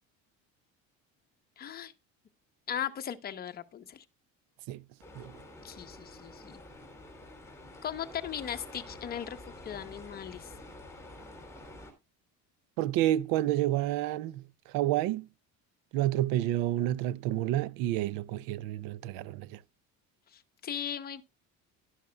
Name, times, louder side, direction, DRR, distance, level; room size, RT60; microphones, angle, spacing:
voice 1, 1.6-1.9 2.7-4.0 5.6-6.6 7.8-9.4 9.6-10.5 20.3-21.2, left 9 dB, 25° left, 0.9 m, -38 dB
sound 1, 5.0-11.9, left 1 dB, 10° left, 3.0 m, -48 dB
voice 2, 12.8-14.4 14.7-15.3 15.9-19.6, right 14 dB, 85° right, 0.7 m, -29 dB
12.0 x 11.5 x 2.3 m
cardioid pair, 170°, 34 cm